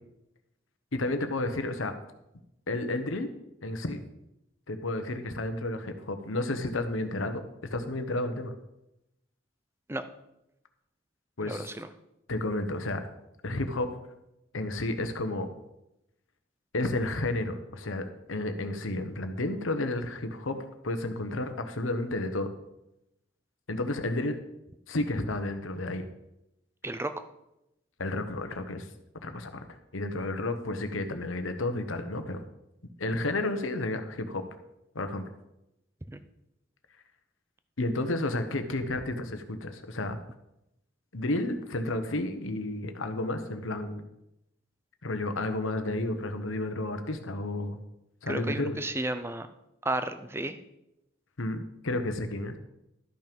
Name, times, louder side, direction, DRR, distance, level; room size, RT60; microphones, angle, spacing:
voice 1, 0.9-2.0 2.7-3.3 3.6-4.0 4.7-7.4 7.7-8.5 11.4-11.6 12.3-13.0 13.4-13.9 14.5-15.5 16.7-20.6 20.8-22.5 23.7-24.4 24.9-26.0 28.0-28.9 29.2-29.6 29.9-32.4 33.0-34.4 34.9-35.2 37.8-40.2 41.1-44.0 45.0-47.8 48.2-48.8 51.4-52.5, left 2 dB, 90° left, 8 dB, 1.1 m, -31 dB
voice 2, 11.4-11.9 26.8-27.1 36.1-36.2 48.3-49.5 49.8-50.6, right 2 dB, 10° right, 10 dB, 0.5 m, -33 dB
13.0 x 5.8 x 5.3 m, 0.87 s
head